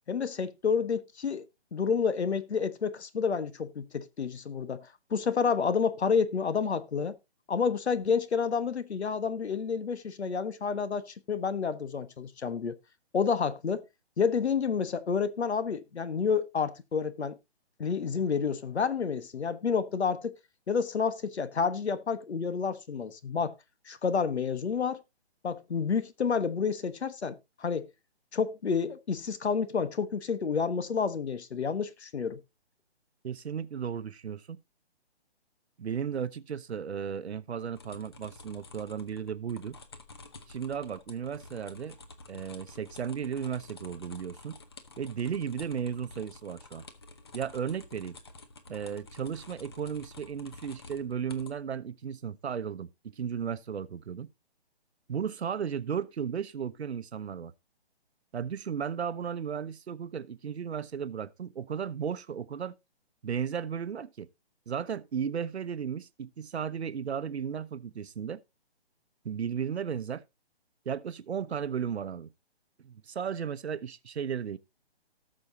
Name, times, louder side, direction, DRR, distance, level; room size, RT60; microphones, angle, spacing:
voice 1, 0.1-1.4 1.7-4.8 5.1-7.2 7.5-12.8 13.1-13.8 14.2-17.4 17.8-20.3 20.7-23.6 23.9-25.0 25.4-27.9 28.3-32.4, left 6 dB, 85° left, 1.3 m, -29 dB
voice 2, 33.2-34.6 35.8-39.8 40.5-42.0 42.3-44.6 45.0-46.9 47.3-48.2 48.7-54.3 55.1-57.5 58.3-62.7 63.2-64.3 64.7-68.4 69.2-70.2 70.8-72.3 72.8-74.6, right 7 dB, 80° right, 0.9 m, -35 dB
sound 1, 37.8-51.5, left 3 dB, 25° left, 0.7 m, -50 dB
18.0 x 6.4 x 2.7 m
hypercardioid pair, 170°, 32 cm